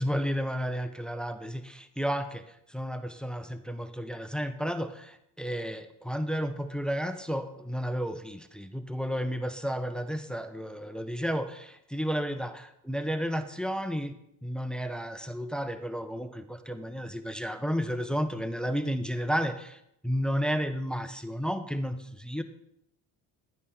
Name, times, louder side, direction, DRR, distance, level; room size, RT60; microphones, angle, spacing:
voice 1, 0.0-14.2 14.4-22.4, equal, ahead, 10 dB, 0.9 m, -32 dB
12.0 x 9.4 x 3.9 m, 0.78 s
hypercardioid pair, 60°, 50 cm